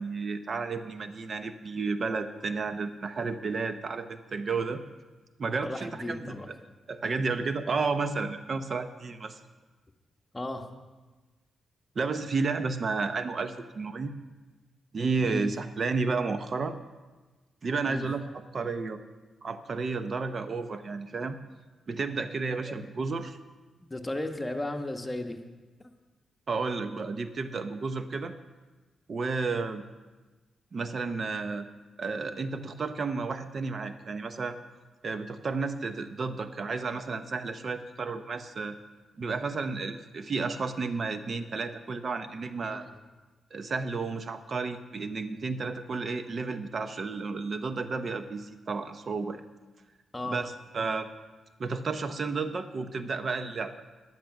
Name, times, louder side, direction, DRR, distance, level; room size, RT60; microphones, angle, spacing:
voice 1, 0.0-4.8 5.4-6.5 6.9-9.4 12.0-14.1 14.9-16.7 17.6-18.2 18.5-19.0 19.4-21.3 21.9-23.4 26.5-28.3 29.1-29.8 30.7-31.7 32.0-34.6 35.0-38.8 39.2-42.8 43.5-49.4 50.3-51.1 51.6-53.7, right 4 dB, 50° right, 10 dB, 0.7 m, -32 dB
voice 2, 5.6-6.5 10.3-10.7 15.2-15.5 17.8-18.1 22.4-22.8 23.9-25.4 25.8-25.9 42.7-43.0 50.1-50.4, left 1 dB, 20° left, 5 dB, 1.2 m, -35 dB
10.5 x 10.0 x 5.9 m, 1.2 s
cardioid pair, 65°, 0 cm